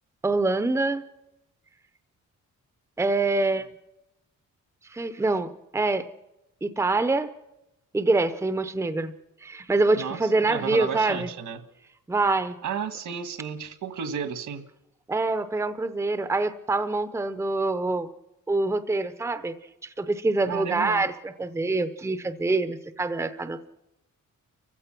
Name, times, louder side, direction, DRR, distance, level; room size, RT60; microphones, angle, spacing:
voice 1, 0.2-1.0 3.0-3.7 4.9-6.1 6.6-7.3 7.9-9.1 9.4-11.3 12.1-12.6 15.1-18.1 18.5-19.5 19.8-23.7, right 3 dB, 10° right, 11 dB, 0.7 m, -25 dB
voice 2, 9.9-11.6 12.6-14.7 20.5-21.1, right 7 dB, 70° right, 10 dB, 1.7 m, -32 dB
30.0 x 16.0 x 6.0 m, 0.93 s
wide cardioid pair, 175°, 31 cm